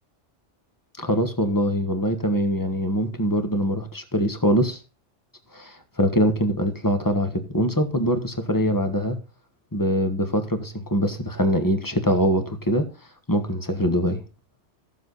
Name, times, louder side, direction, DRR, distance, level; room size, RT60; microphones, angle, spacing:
voice 1, 1.0-4.8 5.5-9.2 9.7-12.9 13.3-14.2, equal, 15° left, 1.4 m, -23 dB
14.5 x 7.5 x 4.1 m
omnidirectional pair, 1.2 m